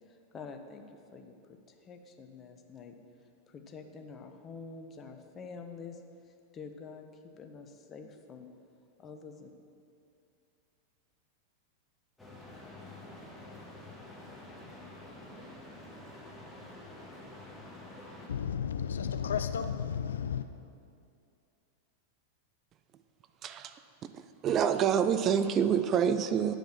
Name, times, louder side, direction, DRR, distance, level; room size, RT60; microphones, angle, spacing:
voice 1, 0.1-0.8 1.1-2.9 3.5-6.0 6.3-7.1 7.4-8.5 9.0-9.5, left 5 dB, 25° left, 0.8 m, -47 dB
sound 1, 12.2-18.3, left 1 dB, 5° left, 1.6 m, -48 dB
voice 2, 18.3-20.5, left 7 dB, 65° left, 0.3 m, -33 dB
voice 3, 23.4-23.8 24.1-26.6, right 8 dB, 30° right, 0.4 m, -27 dB
9.4 x 5.1 x 6.0 m
figure-of-eight pair, 90°, 0 cm